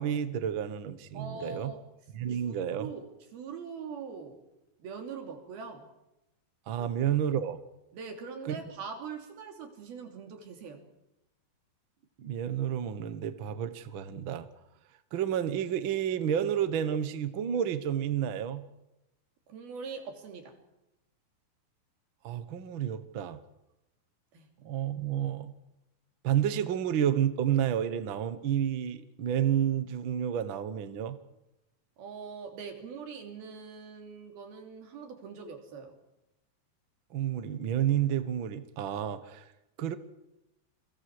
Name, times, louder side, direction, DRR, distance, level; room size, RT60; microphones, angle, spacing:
voice 1, 0.0-1.7 2.1-2.9 6.7-7.6 8.4-8.6 12.2-14.5 15.1-18.6 22.2-23.4 24.6-25.5 26.2-31.2 37.1-39.4 39.8-40.0, right 9 dB, 60° right, 11 dB, 1.3 m, -30 dB
voice 2, 1.1-1.8 2.3-3.1 3.3-4.4 4.8-5.9 6.8-6.9 7.9-10.8 19.5-20.5 24.3-24.5 32.0-35.9, right 5 dB, 90° right, 4 dB, 4.9 m, -42 dB
28.5 x 24.0 x 4.8 m, 0.91 s
omnidirectional pair, 4.2 m